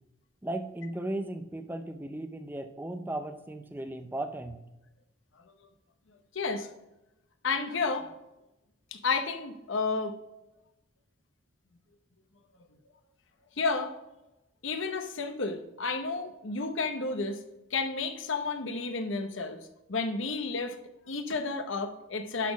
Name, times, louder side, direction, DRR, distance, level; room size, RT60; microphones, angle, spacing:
voice 1, 0.4-4.6, right 1 dB, 10° right, 8 dB, 0.4 m, -36 dB
voice 2, 6.3-6.7 7.4-8.1 8.9-10.1 13.6-14.0 14.6-17.4 17.7-19.6 19.9-20.8 21.1-22.5, left 4 dB, 75° left, 7 dB, 0.9 m, -31 dB
11.5 x 4.2 x 6.1 m, 0.95 s
head